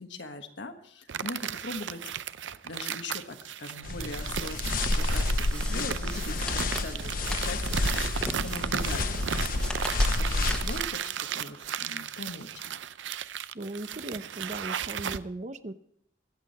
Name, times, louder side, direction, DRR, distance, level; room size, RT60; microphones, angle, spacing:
voice 1, 0.0-2.0 2.6-9.4 9.9-12.5, left 2 dB, 80° left, 6 dB, 1.4 m, -41 dB
sound 1, 1.1-15.2, right 8 dB, 85° right, 0.5 m, -35 dB
sound 2, 3.8-10.8, left 2 dB, 50° left, 0.8 m, -29 dB
sound 3, 5.1-10.9, left 1 dB, 5° left, 1.2 m, -42 dB
voice 2, 13.5-15.7, right 2 dB, 40° right, 11 dB, 0.8 m, -38 dB
23.5 x 8.5 x 4.2 m, 0.66 s
head